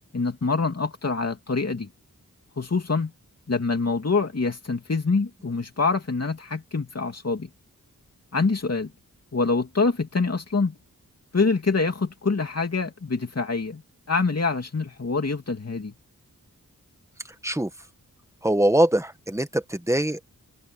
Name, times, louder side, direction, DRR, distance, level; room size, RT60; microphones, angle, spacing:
voice 1, 0.1-1.9 2.6-3.1 3.5-7.5 8.3-8.9 9.3-10.7 11.3-13.8 14.1-15.9, left 4 dB, 45° left, 2.9 m, -25 dB
voice 2, 18.4-20.3, right 1 dB, 10° right, 1.6 m, -22 dB
wide cardioid pair, 85°, 34 cm